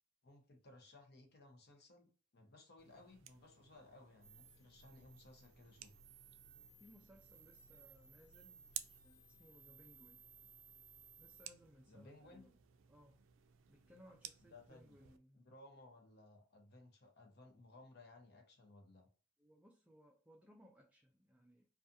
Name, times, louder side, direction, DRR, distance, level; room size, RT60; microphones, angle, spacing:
voice 1, 0.2-6.0 11.9-12.5 14.4-15.0 15.3-19.1, left 2 dB, 55° left, 4 dB, 0.7 m, -61 dB
sound 1, 2.8-15.2, right 11 dB, 80° right, 0.3 m, -57 dB
sound 2, 4.2-11.5, right 5 dB, 40° right, 0.7 m, -63 dB
voice 2, 6.5-8.7 9.0-10.2 11.2-12.6 12.9-13.2 13.7-15.5 19.4-21.6, equal, 5° right, -1 dB, 0.4 m, -64 dB
2.5 x 2.3 x 2.5 m, 0.39 s
head